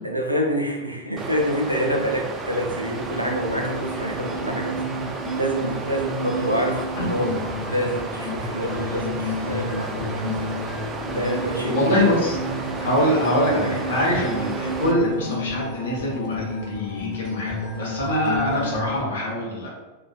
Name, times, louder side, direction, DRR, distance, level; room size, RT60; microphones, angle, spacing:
voice 1, 0.0-4.8 5.3-7.4 7.7-10.5 11.1-12.3, equal, 85° right, 0 dB, 0.4 m, -27 dB
Water, 1.2-14.9, right 3 dB, 20° right, 0.3 m, -33 dB
sound 1, 3.0-19.0, left 1 dB, 30° left, 0.8 m, -31 dB
voice 2, 7.0-7.3 11.7-12.4 12.8-19.7, left 1 dB, 65° left, -4 dB, 0.8 m, -24 dB
2.3 x 2.3 x 2.3 m, 1.1 s
figure-of-eight pair, 90°, 0 cm